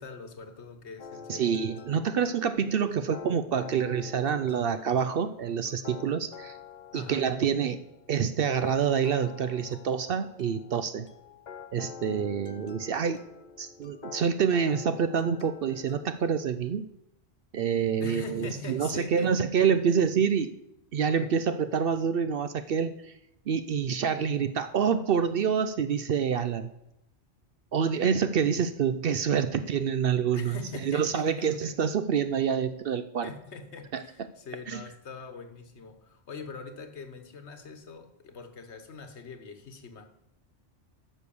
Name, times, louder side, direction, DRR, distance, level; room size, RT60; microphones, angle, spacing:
voice 1, 0.0-1.5 6.9-7.3 18.0-19.4 30.3-31.7 33.2-40.0, left 4 dB, 65° left, 8 dB, 1.3 m, -42 dB
sound 1, 1.0-16.3, left 6 dB, 45° left, 0.7 m, -47 dB
voice 2, 1.3-6.6 6.9-7.8 8.1-11.1 11.7-13.2 13.6-16.9 17.5-20.5 20.9-23.1 23.5-26.7 27.7-33.3 33.9-34.0 34.7-34.8, right 7 dB, 60° right, 11 dB, 0.7 m, -27 dB
9.9 x 6.4 x 7.0 m, 0.82 s
omnidirectional pair, 1.2 m